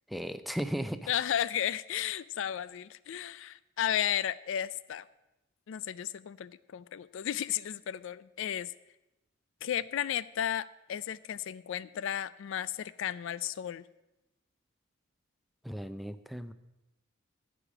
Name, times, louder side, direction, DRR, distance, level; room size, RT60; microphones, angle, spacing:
voice 1, 0.1-1.1 15.6-16.5, equal, ahead, 11 dB, 0.4 m, -36 dB
voice 2, 1.1-5.1 5.7-8.7 9.6-13.8, left 10 dB, 70° left, 18 dB, 0.4 m, -34 dB
15.0 x 5.0 x 7.3 m, 0.97 s
head